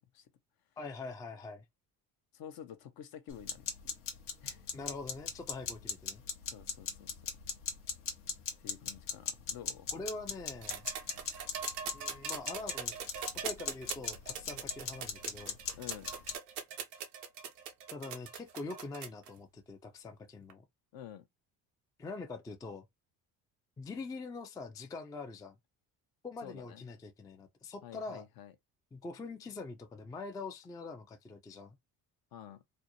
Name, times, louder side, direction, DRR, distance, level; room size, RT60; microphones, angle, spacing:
voice 1, 0.8-1.6 4.7-6.2 9.9-10.9 11.9-13.0 13.4-15.6 17.9-20.6 22.0-22.9 23.8-25.6 26.2-28.2 28.9-31.8, left 3 dB, 10° left, 0.3 m, -44 dB
voice 2, 2.3-3.9 4.4-4.7 6.5-7.1 8.6-9.9 15.8-16.1 20.9-21.3 26.4-26.9 27.8-28.5 32.3-32.6, left 9 dB, 50° left, 0.6 m, -49 dB
sound 1, 3.3-16.3, left 6 dB, 80° left, 0.9 m, -39 dB
sound 2, 10.6-19.3 20.5-20.6, right 7 dB, 90° right, 0.6 m, -42 dB
2.5 x 2.1 x 2.7 m
hypercardioid pair, 55°, 45 cm